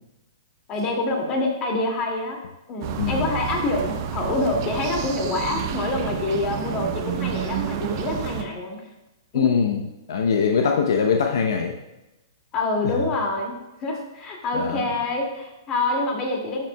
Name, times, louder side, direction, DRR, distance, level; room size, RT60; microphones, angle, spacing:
voice 1, 0.7-2.4 2.7-8.9 9.3-9.5 12.5-16.7, left 2 dB, 30° left, 0 dB, 2.3 m, -26 dB
sound 1, 2.8-8.4, right 8 dB, 45° right, 0.9 m, -29 dB
voice 2, 9.3-9.8 10.1-11.7 14.5-14.9, left 6 dB, 70° left, 3 dB, 0.8 m, -22 dB
13.0 x 7.5 x 2.3 m, 0.99 s
hypercardioid pair, 125°, 2 cm